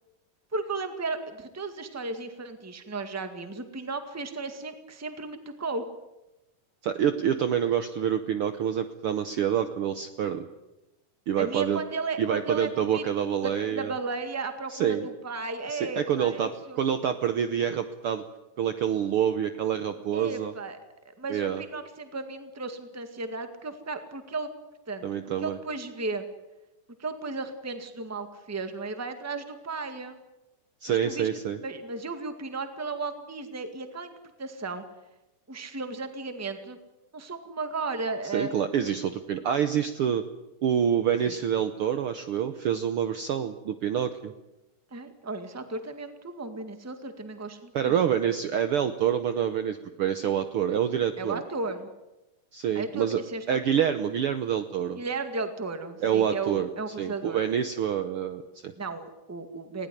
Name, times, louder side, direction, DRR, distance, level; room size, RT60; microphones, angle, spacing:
voice 1, 0.5-5.8 11.4-13.0 13.4-16.8 20.1-20.8 21.0-24.5 24.9-25.1 25.4-26.2 27.0-30.2 30.9-31.3 31.6-34.1 34.4-34.8 35.5-36.8 37.1-38.5 41.3-41.4 44.9-48.0 51.2-51.9 52.7-53.6 54.9-57.4 58.8-59.9, right 3 dB, 10° right, 8 dB, 0.9 m, -35 dB
voice 2, 6.8-10.5 11.3-11.8 12.2-13.9 14.7-15.1 15.7-16.5 16.8-18.2 18.6-20.5 21.3-21.6 25.0-25.6 30.8-31.6 38.2-40.2 40.6-44.3 47.7-51.4 52.5-53.2 53.5-55.0 56.0-56.7 57.0-58.7, right 9 dB, 85° right, 9 dB, 1.2 m, -27 dB
19.5 x 17.5 x 9.9 m, 0.98 s
omnidirectional pair, 3.8 m